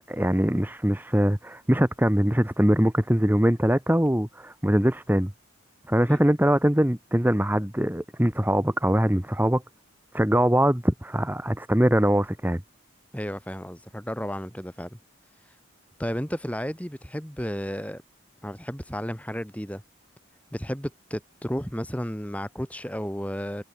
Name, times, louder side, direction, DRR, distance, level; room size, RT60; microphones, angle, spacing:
voice 1, 0.1-5.3 5.9-9.6 10.1-12.6, equal, 10° right, 1.3 m, -22 dB
voice 2, 13.1-15.0 16.0-18.0 18.4-19.8 20.5-23.7, equal, 5° left, 6.6 m, -33 dB
head